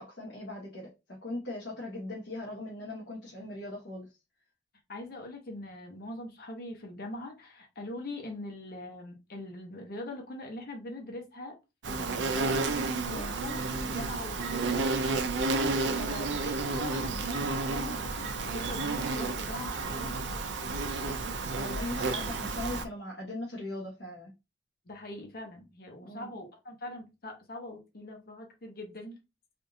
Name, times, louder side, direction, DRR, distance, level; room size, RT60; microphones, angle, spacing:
voice 1, 0.0-4.1 13.0-13.4 15.9-16.3 21.6-24.3 26.0-26.3, left 1 dB, 90° left, 1.1 m, -40 dB
voice 2, 4.9-11.6 11.9-15.2 15.6-21.4 24.9-29.2, left 1 dB, 55° left, 0.9 m, -42 dB
Insect, 11.8-22.8, right 3 dB, 85° right, 0.5 m, -31 dB
3.5 x 2.5 x 2.7 m
head